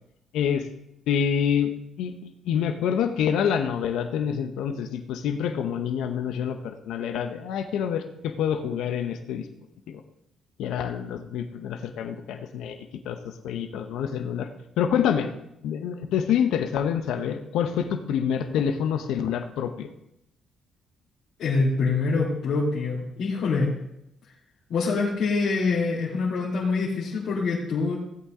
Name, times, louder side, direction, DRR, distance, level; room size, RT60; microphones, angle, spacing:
voice 1, 0.3-0.7 1.1-1.7 2.0-9.4 9.9-10.0 10.6-12.8 13.0-13.2 13.4-14.5 14.8-15.3 15.6-19.9, left 8 dB, 85° left, 6 dB, 1.0 m, -27 dB
voice 2, 21.4-23.7 24.7-28.0, left 4 dB, 70° left, -8 dB, 2.9 m, -25 dB
16.5 x 8.4 x 3.8 m, 0.81 s
cardioid pair, 90°, 0 cm